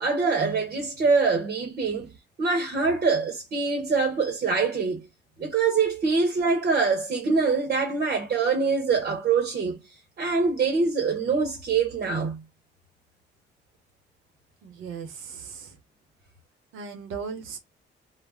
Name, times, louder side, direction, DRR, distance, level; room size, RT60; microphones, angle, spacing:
voice 1, 0.0-2.1 2.4-5.1 5.4-9.8 10.2-12.4, right 4 dB, 50° right, 0.9 m, -24 dB
voice 2, 14.6-15.8 16.7-17.6, right 6 dB, 90° right, 0.8 m, -37 dB
2.4 x 2.1 x 3.3 m
cardioid pair, 90°, 20 cm